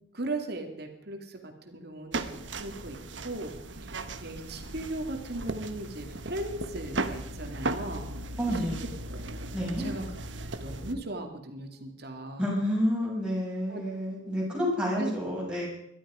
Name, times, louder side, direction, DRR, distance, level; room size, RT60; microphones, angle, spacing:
voice 1, 0.1-3.0 3.2-3.5 3.8-8.3 9.1-9.2 9.8-10.0 10.6-12.5 13.7-13.8 15.0-15.1, right 1 dB, 60° right, 4 dB, 2.5 m, -37 dB
sound 1, 2.1-10.9, right 2 dB, 80° right, 1.3 m, -37 dB
voice 2, 8.4-8.9 9.5-9.9 12.4-15.7, equal, 5° right, -4 dB, 7.0 m, -29 dB
22.0 x 13.0 x 5.1 m, 0.76 s
head